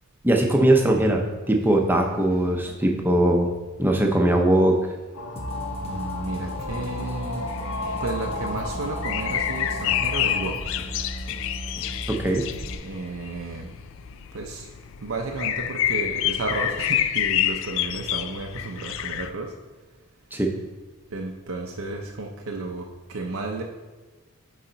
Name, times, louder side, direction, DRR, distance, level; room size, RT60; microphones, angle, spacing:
voice 1, 0.2-3.5 3.8-4.8 12.1-12.5 20.3-20.5, right 1 dB, 10° right, 2 dB, 0.7 m, -20 dB
sound 1, 5.1-10.5, left 3 dB, 85° left, 0.8 m, -34 dB
sound 2, 5.4-12.8, right 1 dB, 30° left, 0.8 m, -36 dB
voice 2, 5.8-7.5 8.0-10.6 12.8-13.7 14.3-14.7 15.0-19.5 21.1-23.6, right 3 dB, 65° right, 1 dB, 0.6 m, -32 dB
sound 3, 7.5-19.3, left 11 dB, 60° left, 0.3 m, -28 dB
8.7 x 4.1 x 3.9 m, 1.3 s
head